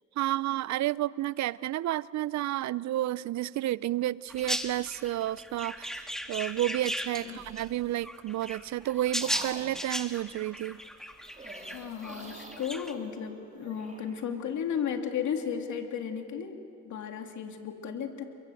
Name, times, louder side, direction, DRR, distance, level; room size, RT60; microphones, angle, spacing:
voice 1, 0.2-10.8, right 14 dB, 65° right, 0.5 m, -31 dB
sound 1, 4.3-7.7 8.0-12.9, equal, ahead, 1.7 m, -37 dB
sound 2, 7.2-7.8 8.4-9.9 11.2-14.3, right 3 dB, 25° right, 3.8 m, -47 dB
voice 2, 11.7-18.2, left 7 dB, 70° left, 2.6 m, -34 dB
28.5 x 22.0 x 7.8 m
cardioid pair, 90°, 30 cm